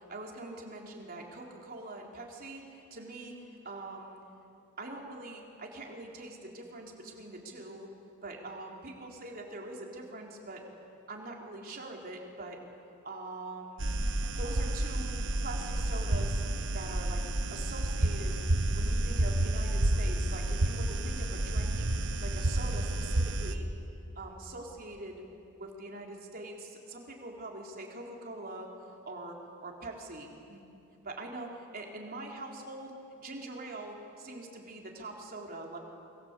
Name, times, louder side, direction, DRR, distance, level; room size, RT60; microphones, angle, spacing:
voice 1, 0.0-4.2 4.8-7.9 8.2-10.6 11.1-12.6 13.0-14.0 14.4-16.4 16.7-17.2 17.5-18.4 18.7-21.9 22.2-23.7 24.2-25.2 25.6-30.6 31.0-32.9 33.2-35.8, right 2 dB, 45° right, 0 dB, 3.9 m, -43 dB
sound 1, 13.8-23.5, right 1 dB, 60° right, 1.2 m, -30 dB
28.5 x 23.5 x 8.3 m, 2.7 s
head